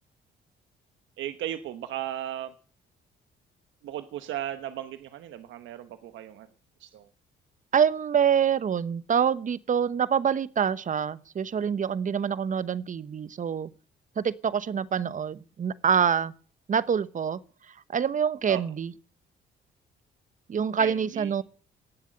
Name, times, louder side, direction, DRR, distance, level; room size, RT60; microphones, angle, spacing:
voice 1, 1.2-2.5 3.8-6.5 6.8-7.1 18.5-18.6 20.8-21.3, right 12 dB, 80° right, 1.2 m, -36 dB
voice 2, 7.7-13.7 14.2-16.3 16.7-17.4 17.7-18.9 20.5-21.4, right 7 dB, 40° right, 0.9 m, -26 dB
18.0 x 7.5 x 8.8 m
cardioid pair, 85°, 19 cm